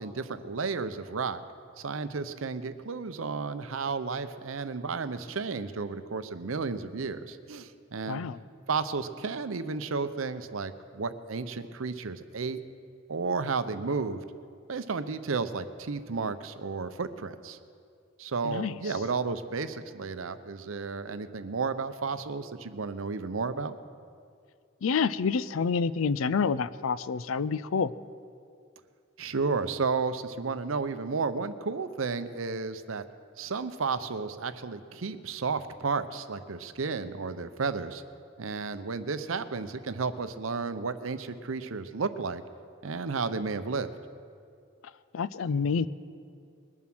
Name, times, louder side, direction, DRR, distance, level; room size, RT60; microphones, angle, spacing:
voice 1, 0.0-1.4 1.8-8.2 8.7-12.6 13.1-14.2 14.7-17.6 18.2-23.8 29.2-33.1 33.4-38.0 38.4-42.4 42.8-43.9, right 4 dB, 90° right, 11 dB, 0.7 m, -32 dB
voice 2, 8.1-8.4 18.4-18.7 24.8-27.9 45.1-45.9, left 5 dB, 85° left, 17 dB, 0.4 m, -28 dB
21.0 x 7.3 x 6.1 m, 2.3 s
head